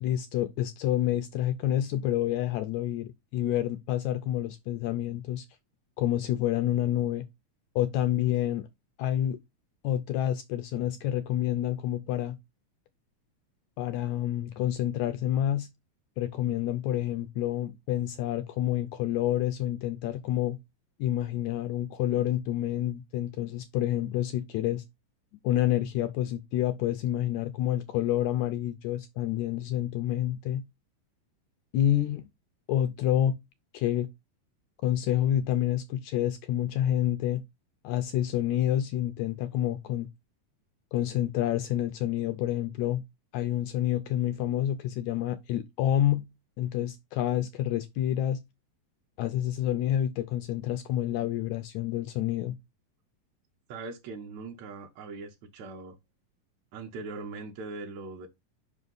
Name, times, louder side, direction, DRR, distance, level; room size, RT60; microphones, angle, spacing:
voice 1, 0.0-5.5 6.0-7.3 7.8-8.7 9.0-9.4 9.8-12.4 13.8-15.7 16.2-20.6 21.0-24.8 25.4-30.7 31.7-32.2 32.7-33.4 33.7-34.1 34.8-37.4 37.8-40.1 40.9-43.0 43.3-46.3 46.6-48.4 49.2-52.6, left 12 dB, 80° left, 1.7 m, -28 dB
voice 2, 53.7-56.0 56.7-58.3, right 3 dB, 65° right, 2.0 m, -40 dB
5.5 x 5.4 x 3.9 m
omnidirectional pair, 3.8 m